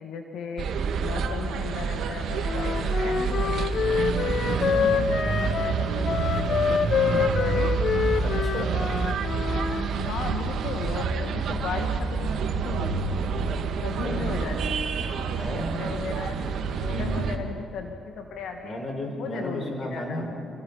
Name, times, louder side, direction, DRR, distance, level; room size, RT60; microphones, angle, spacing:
voice 1, 0.0-3.8 4.6-7.7 9.9-13.2 13.8-14.9 15.7-16.4 16.8-18.8 19.2-20.2, left 5 dB, 80° left, 4 dB, 1.8 m, -36 dB
sound 1, 0.6-17.4, right 5 dB, 70° right, 1.8 m, -28 dB
Wind instrument woodwind instrument, 2.4-9.9, left 6 dB, 55° left, 1.1 m, -26 dB
voice 2, 8.2-9.0 14.0-14.3 15.2-15.9 16.9-17.3 18.6-20.4, left 1 dB, 35° left, 2 dB, 5.6 m, -34 dB
28.5 x 24.5 x 5.7 m, 2.6 s
cardioid pair, 90°, 0 cm